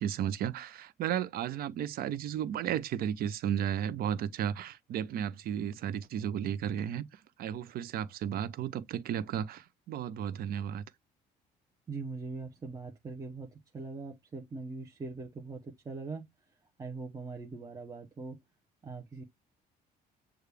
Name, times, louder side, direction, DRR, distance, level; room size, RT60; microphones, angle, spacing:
voice 1, 0.0-10.8, right 9 dB, 60° right, 0.5 m, -34 dB
voice 2, 11.9-16.3 16.8-18.4 18.8-19.2, right 3 dB, 20° right, 0.7 m, -41 dB
6.5 x 2.3 x 3.3 m
cardioid pair, 110°, 17 cm